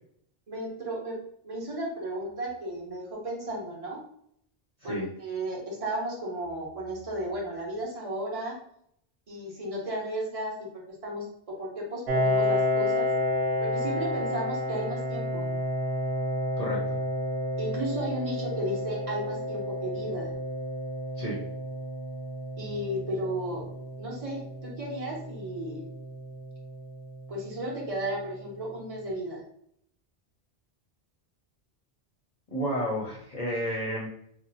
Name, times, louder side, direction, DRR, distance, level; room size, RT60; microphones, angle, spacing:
voice 1, 0.5-4.0 4.8-8.6 9.3-13.1 13.6-15.5 17.6-20.3 22.6-23.7 24.0-25.8 27.3-29.4, right 1 dB, 35° right, -3 dB, 1.0 m, -34 dB
Piano, 12.1-27.4, left 1 dB, 85° right, 0.9 m, -31 dB
voice 2, 16.6-17.0 21.2-21.4 32.5-34.1, equal, 45° left, -4 dB, 0.7 m, -31 dB
2.7 x 2.0 x 4.0 m, 0.70 s
omnidirectional pair, 1.1 m